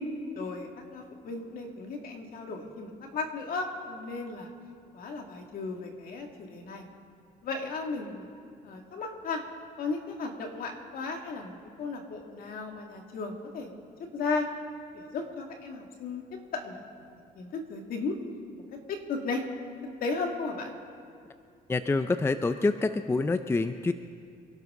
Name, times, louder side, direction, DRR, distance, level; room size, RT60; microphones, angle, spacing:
voice 1, 0.4-4.5 4.9-6.8 7.4-8.3 8.6-9.4 9.8-13.7 14.1-14.5 14.9-16.2 16.5-17.1 17.3-18.2 18.9-19.4 20.0-20.7, left 4 dB, 60° left, 2 dB, 2.3 m, -35 dB
voice 2, 21.7-23.9, left 3 dB, 15° left, 10 dB, 0.5 m, -26 dB
26.5 x 12.0 x 3.8 m, 2.4 s
cardioid pair, 110°, 17 cm